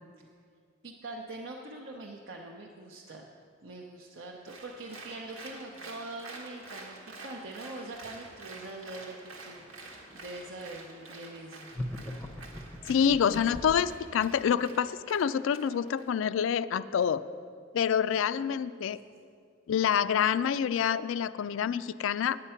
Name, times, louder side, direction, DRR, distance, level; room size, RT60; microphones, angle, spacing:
voice 1, 0.8-3.3 3.6-11.7, right 2 dB, 65° right, -1 dB, 0.8 m, -43 dB
Applause, 4.5-16.1, right 3 dB, 90° right, 1.4 m, -48 dB
sound 1, 11.7-14.0, left 1 dB, 10° left, 0.6 m, -38 dB
voice 2, 12.9-17.2 17.7-19.0 19.7-22.4, left 8 dB, 70° left, 15 dB, 0.3 m, -27 dB
9.7 x 8.8 x 5.7 m, 2.3 s
head